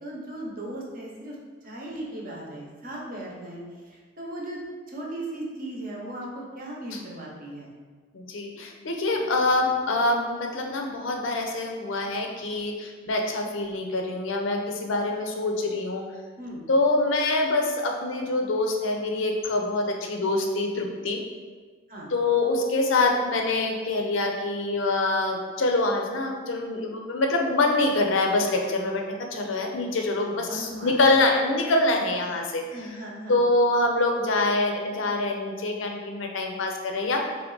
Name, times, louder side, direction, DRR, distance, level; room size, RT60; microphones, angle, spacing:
voice 1, 0.0-1.4 1.6-3.6 3.9-4.6 4.9-7.7 16.4-16.6 21.9-22.1 30.2-30.9 32.7-33.4, right 1 dB, 45° right, -3 dB, 0.8 m, -37 dB
voice 2, 8.1-16.0 16.7-21.2 22.1-29.0 29.3-32.6 33.3-37.2, left 2 dB, 70° left, 2 dB, 0.6 m, -25 dB
3.6 x 3.2 x 3.8 m, 1.5 s
head